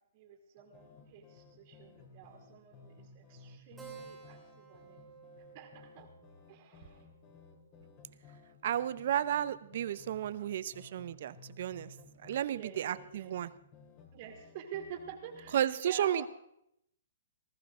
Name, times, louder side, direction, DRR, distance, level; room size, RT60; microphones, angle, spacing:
voice 1, 0.1-5.0 5.5-6.1 6.5-7.1 12.4-13.3 14.1-16.3, right 8 dB, 35° right, 3 dB, 2.3 m, -48 dB
sound 1, 0.6-15.7, left 4 dB, 30° left, 2.9 m, -57 dB
Keyboard (musical), 3.8-8.7, right 6 dB, 5° right, 2.6 m, -55 dB
voice 2, 8.6-11.9 12.2-13.5 15.5-16.3, right 10 dB, 55° right, 16 dB, 0.8 m, -33 dB
20.0 x 14.5 x 3.8 m, 0.74 s
hypercardioid pair, 155°, 0 cm